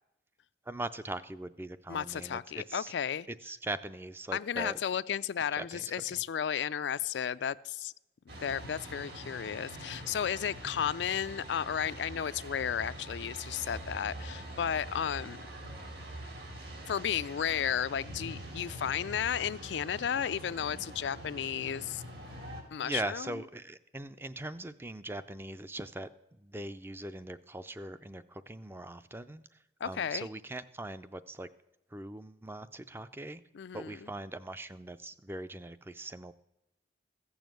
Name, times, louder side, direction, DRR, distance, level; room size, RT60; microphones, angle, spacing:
voice 1, 0.7-2.9 3.3-4.8 5.5-6.2 10.7-10.8 15.2-15.4 22.8-26.1 26.4-29.5 29.8-31.5 31.9-33.4 33.7-36.3, right 2 dB, 10° right, 12 dB, 0.4 m, -41 dB
voice 2, 1.9-3.3 4.3-7.9 8.4-15.4 16.9-22.0 22.7-23.4 29.8-30.3 33.5-33.9, left 8 dB, 75° left, 15 dB, 0.4 m, -33 dB
sound 1, 8.3-22.6, right 1 dB, 65° right, 2.7 m, -44 dB
15.0 x 7.1 x 7.7 m, 0.88 s
head